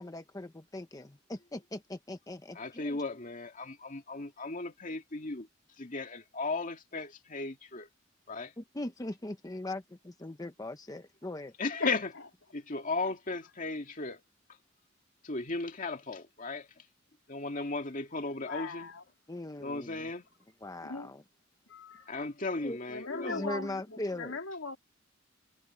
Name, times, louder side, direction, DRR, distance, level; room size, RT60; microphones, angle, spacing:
voice 1, 0.0-3.0 8.6-11.5 19.3-20.1 20.6-21.2 22.6-22.8 23.1-24.4, left 1 dB, 20° left, 0.8 m, -40 dB
voice 2, 2.6-5.5 5.8-7.9 8.3-8.5 11.6-12.1 12.5-14.2 15.2-16.7 17.3-18.9 19.6-20.2 22.1-23.4, left 3 dB, 40° left, 2.2 m, -36 dB
voice 3, 18.4-19.0 20.8-21.1 21.7-22.1 22.9-24.8, left 3 dB, 80° left, 3.0 m, -38 dB
head